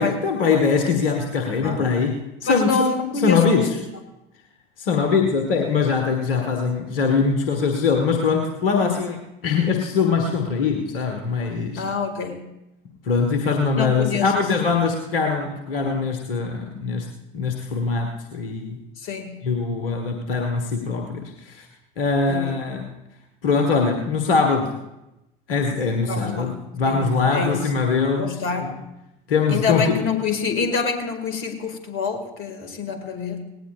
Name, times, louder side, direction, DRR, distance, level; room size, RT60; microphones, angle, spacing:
voice 1, 0.0-3.7 4.8-11.8 13.0-18.8 19.4-21.7 22.0-22.9 23.4-24.8 25.5-28.7 29.3-30.0, left 5 dB, 70° left, 4 dB, 1.3 m, -22 dB
voice 2, 2.4-3.7 8.7-8.9 11.7-12.5 13.8-14.5 19.0-19.5 22.3-22.6 26.1-27.6 28.2-28.8 29.5-33.4, left 5 dB, 45° left, 7 dB, 2.1 m, -26 dB
18.5 x 17.5 x 2.4 m, 0.93 s
figure-of-eight pair, 70°, 29 cm